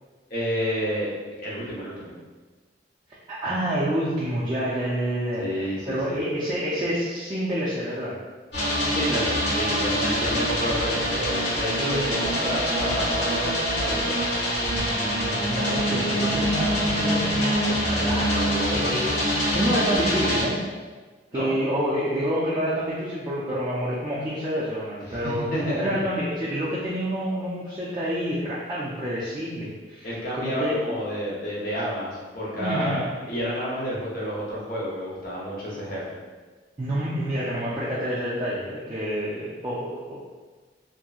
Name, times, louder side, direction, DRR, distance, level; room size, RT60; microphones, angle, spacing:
voice 1, 0.3-1.1 1.4-2.1 5.4-6.2 8.9-13.5 13.8-14.2 21.3-21.5 25.1-25.8 30.0-36.0, equal, 55° left, -6 dB, 0.8 m, -30 dB
voice 2, 3.3-5.5 5.9-8.1 11.8-12.1 14.8-20.6 21.3-25.4 25.8-30.8 32.6-33.1 36.8-40.2, equal, 25° right, -8 dB, 0.4 m, -28 dB
sound 1, 8.5-20.4, equal, 75° left, 1.2 m, -25 dB
2.8 x 2.6 x 2.3 m, 1.3 s
head